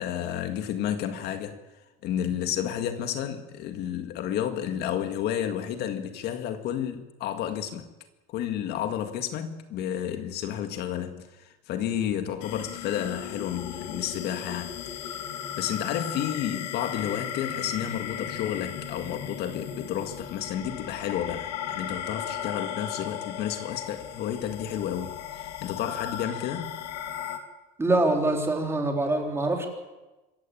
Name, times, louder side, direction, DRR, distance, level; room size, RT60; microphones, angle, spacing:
voice 1, 0.0-1.6 2.0-7.9 8.3-15.2 15.5-26.7, left 10 dB, 55° left, 1.9 m, -31 dB
sound 1, 12.4-27.4, left 9 dB, 85° left, 2.8 m, -36 dB
voice 2, 27.8-29.7, right 2 dB, 10° right, 3.9 m, -24 dB
26.0 x 15.0 x 8.7 m
cardioid pair, 140°, 20 cm